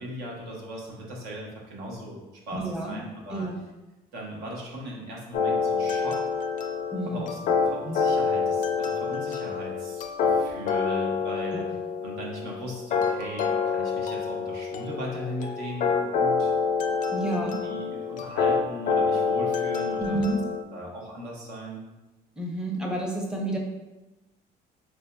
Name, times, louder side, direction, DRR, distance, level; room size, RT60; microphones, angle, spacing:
voice 1, 0.0-3.5 4.1-6.2 7.1-11.7 12.0-16.5 17.4-20.2 20.7-21.8, right 1 dB, 75° right, -3 dB, 0.9 m, -38 dB
voice 2, 2.5-3.0 3.3-3.6 6.9-7.2 11.5-11.6 17.1-17.6 20.0-20.4 22.4-23.6, right 1 dB, 5° right, 0 dB, 0.6 m, -29 dB
sound 1, 5.3-20.6, left 5 dB, 50° left, 0.4 m, -27 dB
4.4 x 2.6 x 2.2 m, 1.1 s
cardioid pair, 110°, 17 cm